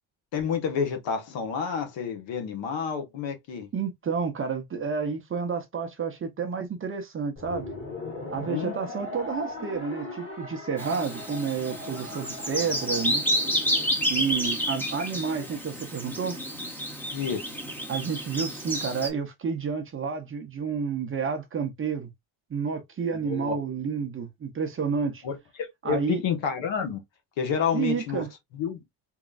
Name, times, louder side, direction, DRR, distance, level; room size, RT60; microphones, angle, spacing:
voice 1, 0.3-3.7 8.2-8.7 17.1-17.5 23.2-23.5 25.2-27.0 27.4-28.2 28.5-28.8, left 7 dB, 70° left, 1.3 m, -29 dB
voice 2, 3.7-7.7 8.3-13.2 14.1-16.4 17.9-22.1 22.5-25.2 25.8-26.2 27.7-28.3, right 6 dB, 25° right, 0.7 m, -30 dB
sound 1, 7.4-13.9, left 2 dB, 25° left, 1.7 m, -39 dB
Bird vocalization bird call bird song, 10.8-19.1, equal, 5° left, 1.0 m, -30 dB
3.8 x 3.1 x 2.3 m
cardioid pair, 150°, 46 cm